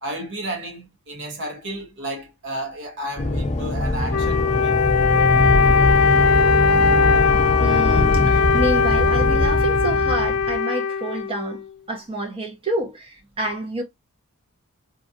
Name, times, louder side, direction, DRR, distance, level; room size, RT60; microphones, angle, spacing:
voice 1, 0.0-4.8 5.6-6.3, right 1 dB, 60° right, 1.1 m, -33 dB
sound 1, 3.2-10.5, left 2 dB, 30° left, 0.7 m, -22 dB
Wind instrument woodwind instrument, 4.1-11.7, left 5 dB, 75° left, 0.4 m, -19 dB
voice 2, 7.2-13.8, right 2 dB, 25° right, 1.0 m, -29 dB
3.1 x 2.6 x 2.5 m
head